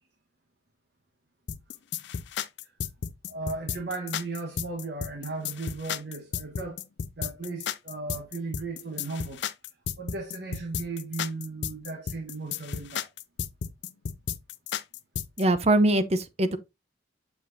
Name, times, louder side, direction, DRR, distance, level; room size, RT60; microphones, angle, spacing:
sound 1, 1.5-15.4, left 7 dB, 65° left, 0.5 m, -34 dB
voice 1, 3.3-6.8 7.2-9.5 10.0-13.1, right 3 dB, 60° right, 1.3 m, -36 dB
voice 2, 15.4-16.6, right 1 dB, 35° right, 0.7 m, -22 dB
7.2 x 5.9 x 2.7 m
head